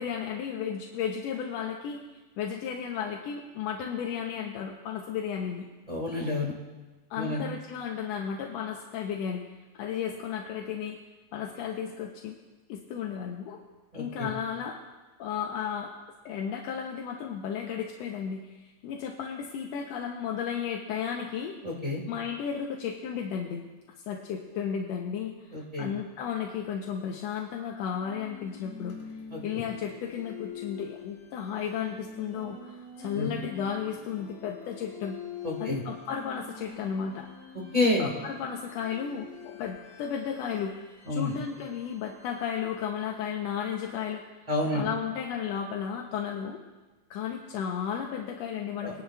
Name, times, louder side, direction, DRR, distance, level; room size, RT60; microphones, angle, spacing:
voice 1, 0.0-2.0 2.4-5.7 7.1-9.4 9.7-11.0 11.3-12.4 12.7-13.6 13.9-14.8 15.2-15.9 16.2-21.5 22.1-23.7 24.1-29.0 29.4-35.2 35.6-37.3 37.8-44.2 44.7-46.6 47.1-49.0, left 8 dB, 75° left, 1 dB, 1.8 m, -34 dB
voice 2, 5.9-6.5 7.1-7.4 13.9-14.3 21.6-22.0 25.5-25.9 29.3-29.4 33.1-33.3 35.4-35.8 37.7-38.1 41.1-41.3 44.5-44.9 48.8-48.9, left 2 dB, 25° right, -2 dB, 0.9 m, -29 dB
sound 1, 27.9-43.0, left 6 dB, 50° left, 3.4 m, -46 dB
21.5 x 10.5 x 2.3 m, 1.2 s
omnidirectional pair, 3.3 m